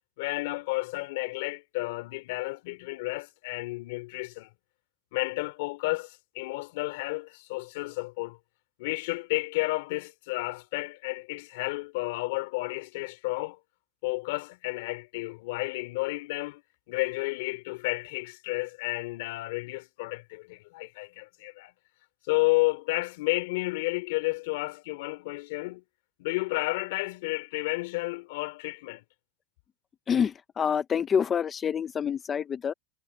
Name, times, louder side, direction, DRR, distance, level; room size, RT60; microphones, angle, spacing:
voice 1, 0.2-4.5 5.1-8.4 8.8-13.6 14.0-16.6 16.9-21.7 22.3-25.8 26.2-29.0, left 23 dB, 60° left, 3.0 m, -31 dB
voice 2, 30.1-32.7, left 7 dB, 20° left, 0.6 m, -27 dB
supercardioid pair, 165°, 0 cm